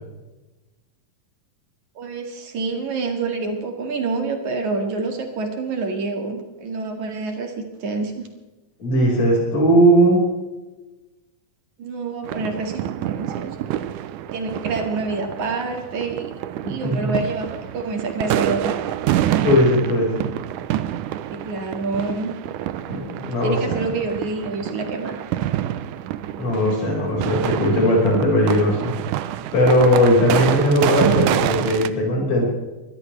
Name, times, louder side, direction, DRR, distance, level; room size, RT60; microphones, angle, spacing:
voice 1, 2.0-7.5 7.8-8.3 11.8-13.6 14.3-16.3 16.7-18.9 21.3-22.3 23.4-25.2, right 3 dB, 65° right, 4 dB, 3.3 m, -27 dB
voice 2, 8.8-10.2 16.6-17.1 19.4-20.1 22.9-23.8 26.4-28.9 29.5-32.4, equal, 60° left, -3 dB, 6.5 m, -18 dB
sound 1, 12.3-31.9, right 12 dB, 80° right, 2.2 m, -27 dB
23.0 x 16.0 x 3.4 m, 1.1 s
omnidirectional pair, 3.7 m